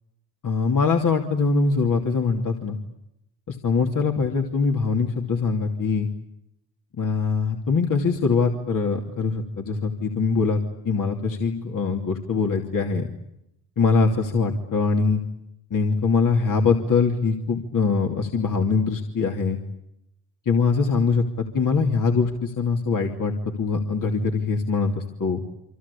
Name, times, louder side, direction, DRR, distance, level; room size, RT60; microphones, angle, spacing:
voice 1, 0.4-2.8 3.5-6.1 7.0-10.6 10.8-13.1 13.8-15.2 15.7-19.6 20.5-23.3 23.6-25.4, left 4 dB, 45° left, 2 dB, 2.9 m, -23 dB
27.5 x 25.0 x 8.5 m, 0.84 s
supercardioid pair, 80°, 46 cm